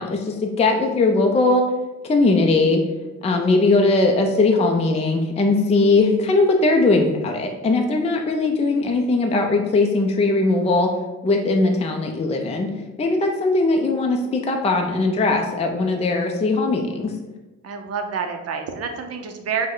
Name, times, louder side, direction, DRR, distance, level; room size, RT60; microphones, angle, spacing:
voice 1, 0.0-1.7 2.0-2.8 3.2-10.9 11.2-12.7 13.0-17.1, left 3 dB, 20° left, 2 dB, 0.4 m, -19 dB
voice 2, 17.6-19.7, right 6 dB, 55° right, 5 dB, 0.7 m, -28 dB
5.0 x 2.2 x 3.7 m, 1.2 s
cardioid pair, 90°, 30 cm